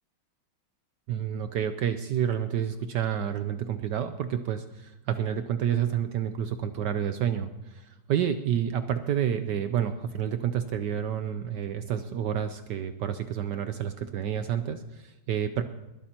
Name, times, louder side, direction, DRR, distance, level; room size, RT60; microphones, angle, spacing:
voice 1, 1.1-15.6, right 9 dB, 70° right, 9 dB, 1.1 m, -29 dB
21.5 x 12.0 x 2.9 m, 1.0 s
omnidirectional pair, 2.3 m